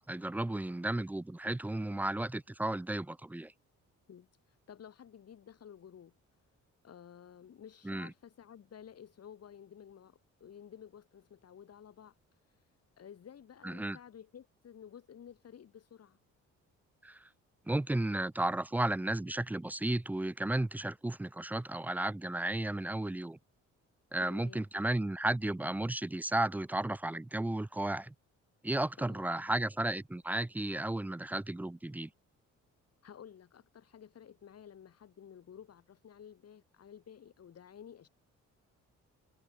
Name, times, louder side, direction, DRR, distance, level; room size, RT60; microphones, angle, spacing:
voice 1, 0.1-3.5 7.8-8.1 13.6-14.0 17.0-17.3 17.7-23.4 24.1-28.1 28.6-32.1, right 1 dB, 5° right, 0.4 m, -34 dB
voice 2, 4.1-6.1 6.8-16.2 24.2-24.7 29.0-29.3 33.0-38.1, left 8 dB, 55° left, 4.2 m, -53 dB
cardioid pair, 90°, 30 cm